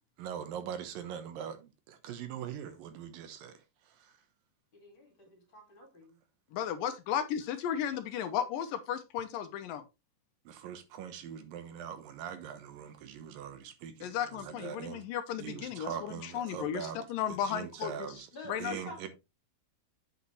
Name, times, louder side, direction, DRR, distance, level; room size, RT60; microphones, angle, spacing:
voice 1, 0.2-3.5 10.5-14.1 14.5-15.0 15.4-17.0 17.5-18.3 18.6-19.1, right 8 dB, 75° right, 2.6 m, -42 dB
voice 2, 4.7-6.2 18.3-19.1, left 2 dB, 40° left, 2.5 m, -48 dB
voice 3, 6.5-9.8 14.0-18.2 18.5-18.8, left 9 dB, 80° left, 2.3 m, -35 dB
8.1 x 7.0 x 3.1 m
omnidirectional pair, 4.2 m